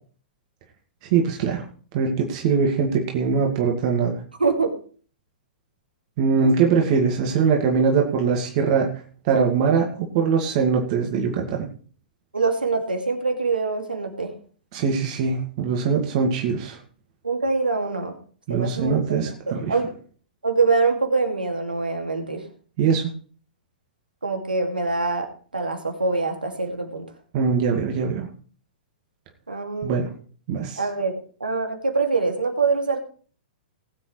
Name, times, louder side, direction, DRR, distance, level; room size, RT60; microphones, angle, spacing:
voice 1, 1.1-1.6 1.9-4.1 6.2-8.9 9.2-11.7 14.7-16.8 18.5-19.7 22.8-23.1 27.3-28.3 29.8-30.1 30.5-30.8, right 5 dB, 45° right, 1 dB, 2.1 m, -22 dB
voice 2, 12.3-14.3 17.2-18.1 18.5-19.2 19.5-19.9 20.4-22.5 24.2-27.1 29.5-30.1 30.8-33.0, right 4 dB, 85° right, 4 dB, 2.4 m, -24 dB
20.0 x 8.0 x 3.3 m, 0.43 s
figure-of-eight pair, 110°, 5 cm